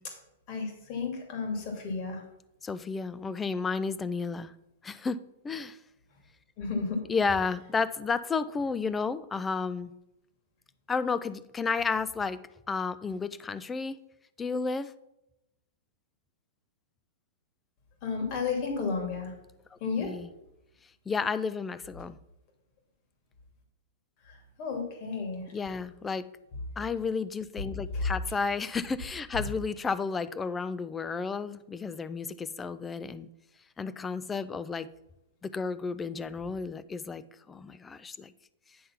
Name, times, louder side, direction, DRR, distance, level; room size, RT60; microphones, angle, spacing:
voice 1, 0.5-2.2 6.6-7.0 18.0-19.3 19.8-20.1 24.2-25.5 27.9-28.1, left 4 dB, 40° left, 3 dB, 2.3 m, -32 dB
voice 2, 2.6-4.5 4.8-5.8 7.1-9.9 10.9-12.4 12.7-14.0 14.4-14.9 19.7-20.3 21.1-22.2 25.5-26.2 26.8-33.3 33.8-34.9 35.4-38.3, left 5 dB, 15° left, 16 dB, 0.4 m, -32 dB
9.3 x 3.6 x 5.7 m, 0.87 s
hypercardioid pair, 145°, 0 cm